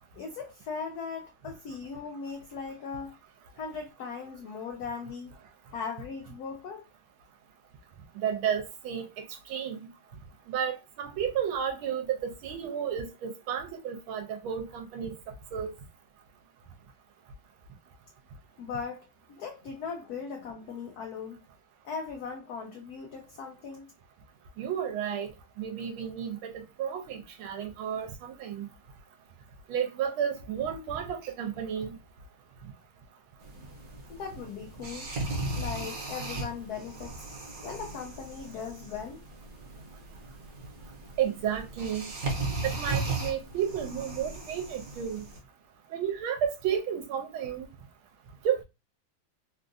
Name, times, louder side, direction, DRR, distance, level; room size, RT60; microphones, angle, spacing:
voice 1, 0.1-3.1 3.6-5.3 5.7-6.8 18.6-19.1 19.4-21.4 21.8-23.9 34.1-35.1 35.5-37.2 37.6-39.2, left 5 dB, 90° left, 0.8 m, -38 dB
voice 2, 8.2-9.8 10.5-15.1 15.5-15.7 24.6-25.3 25.6-26.5 26.8-28.7 29.7-32.0 41.2-42.1 42.6-45.2 45.9-47.7 48.4-48.6, right 8 dB, 85° right, 1.4 m, -32 dB
sound 1, 33.4-45.4, right 2 dB, 55° right, 1.2 m, -37 dB
3.7 x 2.4 x 2.5 m
omnidirectional pair, 2.3 m